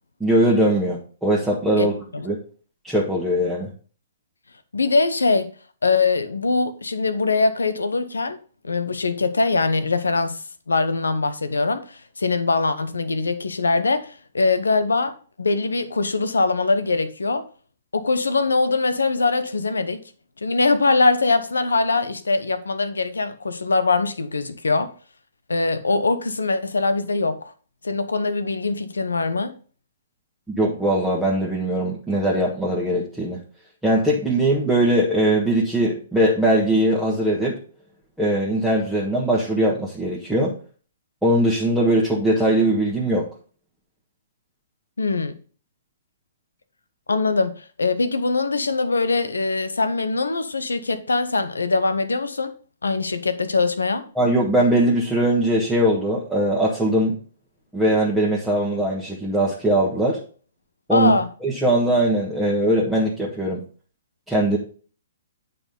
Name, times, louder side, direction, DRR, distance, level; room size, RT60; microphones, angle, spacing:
voice 1, 0.2-1.9 2.2-2.4 2.8-3.7 30.5-33.4 33.8-37.6 38.2-40.5 41.2-43.2 54.2-57.2 57.7-60.2 60.9-61.1 61.4-63.6 64.3-64.6, right 1 dB, 5° right, 1.7 m, -20 dB
voice 2, 4.7-5.5 5.8-8.4 8.6-10.4 10.7-17.4 17.9-20.0 20.4-24.9 25.5-27.5 27.8-29.5 45.0-45.4 47.1-52.5 52.8-54.1 60.9-61.3, left 3 dB, 80° left, 0.9 m, -22 dB
8.9 x 4.2 x 5.3 m
figure-of-eight pair, 125°, 0 cm